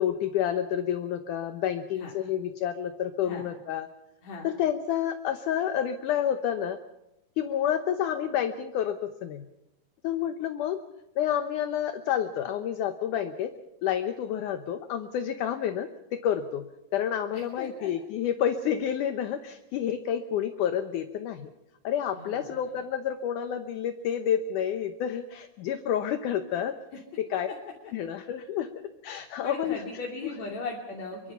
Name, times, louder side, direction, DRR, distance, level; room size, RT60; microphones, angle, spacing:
voice 1, 0.0-3.9 4.4-6.8 7.4-9.5 10.0-10.8 11.2-13.5 13.8-16.7 16.9-21.5 21.8-26.8 27.2-27.5 27.9-28.7 29.0-29.8 30.2-30.3, left 9 dB, 70° left, 8 dB, 2.2 m, -29 dB
voice 2, 17.3-17.9 22.1-22.8 29.4-31.3, left 3 dB, 50° left, 0 dB, 3.9 m, -38 dB
25.5 x 23.5 x 5.6 m, 0.89 s
omnidirectional pair, 4.3 m